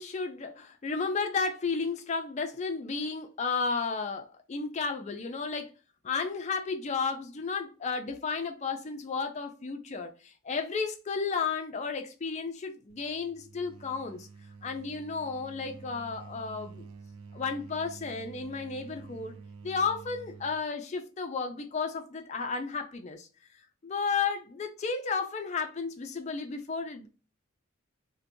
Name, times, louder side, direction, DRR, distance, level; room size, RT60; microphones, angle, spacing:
voice 1, 0.0-5.7 6.0-14.3 14.6-16.9 17.3-19.4 19.6-23.3 23.8-27.1, left 4 dB, 30° left, 0.4 m, -33 dB
sound 1, 12.9-20.6, right 4 dB, 85° right, 0.5 m, -48 dB
2.8 x 2.1 x 2.6 m
head